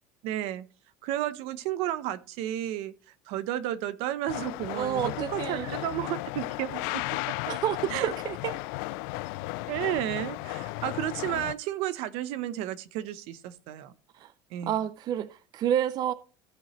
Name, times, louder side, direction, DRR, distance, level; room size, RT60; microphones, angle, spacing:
voice 1, 0.2-0.6 1.0-2.9 3.3-6.9 7.9-8.1 9.7-13.9 14.5-14.7, right 13 dB, 70° right, 0.8 m, -32 dB
sound 1, 4.3-11.5, left 21 dB, 80° left, 0.4 m, -35 dB
voice 2, 4.7-5.9 7.5-8.5 14.1-14.3 14.6-16.1, right 10 dB, 40° right, 0.4 m, -29 dB
15.0 x 5.7 x 3.1 m
cardioid pair, 140°, 11 cm